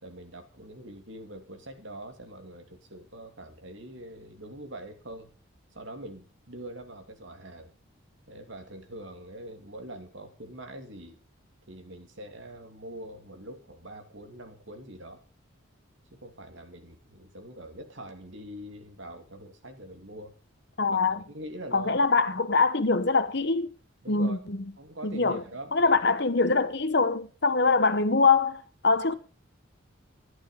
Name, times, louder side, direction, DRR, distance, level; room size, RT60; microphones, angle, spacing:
voice 1, 0.0-5.3 5.7-7.7 8.3-11.2 11.7-15.2 16.1-20.3 20.8-21.9 24.0-24.4 24.8-25.9, right 1 dB, 65° right, 2.7 m, -44 dB
voice 2, 20.8-21.2 21.7-23.7 24.1-24.6 25.0-25.4 25.7-29.1, left 4 dB, 55° left, 1.1 m, -24 dB
13.0 x 11.0 x 5.5 m
head